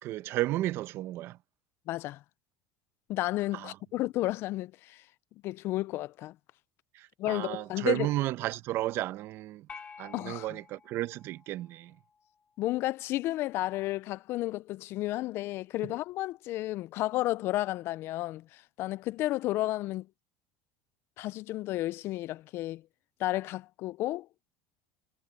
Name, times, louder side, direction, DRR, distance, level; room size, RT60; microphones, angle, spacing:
voice 1, 0.0-1.4 3.5-3.7 6.9-9.7 10.0-11.9, right 15 dB, 55° right, 1.0 m, -33 dB
voice 2, 1.9-2.2 3.1-5.0 5.4-6.4 7.2-8.1 10.1-10.5 12.6-20.1 21.2-22.8 23.2-24.3, left 16 dB, 55° left, 0.4 m, -32 dB
sound 1, 9.7-12.2, left 6 dB, 25° left, 2.2 m, -50 dB
supercardioid pair, 120°, 5 cm